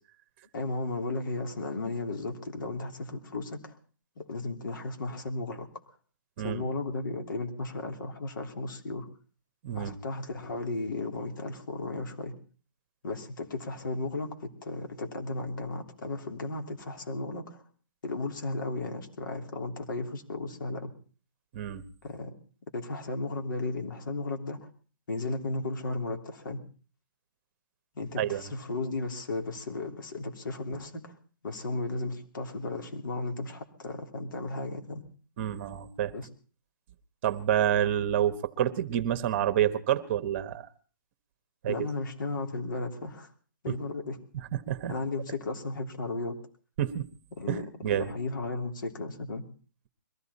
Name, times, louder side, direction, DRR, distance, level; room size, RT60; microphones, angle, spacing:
voice 1, 0.5-3.8 4.2-5.7 6.4-9.1 9.7-12.3 13.0-17.6 18.0-20.9 22.0-22.3 22.7-24.7 25.1-26.6 27.9-31.1 31.4-35.0 36.1-36.3 41.7-43.3 43.6-44.2 44.9-46.4 47.3-49.4, left 2 dB, 70° left, 4 dB, 3.2 m, -35 dB
voice 2, 9.6-10.0 21.5-21.8 28.2-28.4 35.4-36.1 37.2-40.7 41.6-41.8 44.7-44.9 46.8-47.0 47.5-48.1, right 11 dB, 35° right, 11 dB, 1.2 m, -28 dB
22.0 x 14.5 x 4.2 m, 0.39 s
hypercardioid pair, 160°, 11 cm